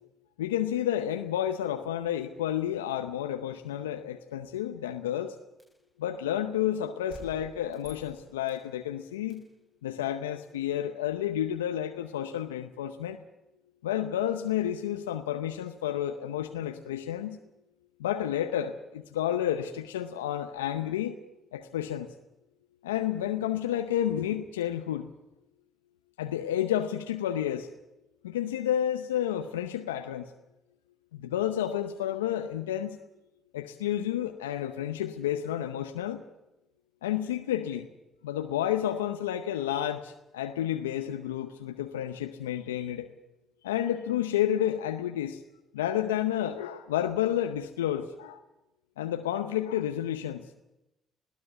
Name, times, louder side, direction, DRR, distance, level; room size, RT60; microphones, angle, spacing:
voice 1, 0.4-5.4 6.0-9.4 9.8-13.2 13.8-17.4 18.0-21.2 21.5-22.1 22.8-25.1 26.2-27.7 28.2-30.3 31.1-33.0 33.5-36.2 37.0-37.9 38.2-43.1 43.6-45.4 45.7-48.4 49.0-50.6, left 11 dB, 90° left, 8 dB, 0.7 m, -30 dB
sound 1, 5.6-5.9 7.1-8.7 9.3-9.6, left 1 dB, 5° left, 4.1 m, -51 dB
20.5 x 15.5 x 8.1 m, 0.95 s
hypercardioid pair, 50°, 0 cm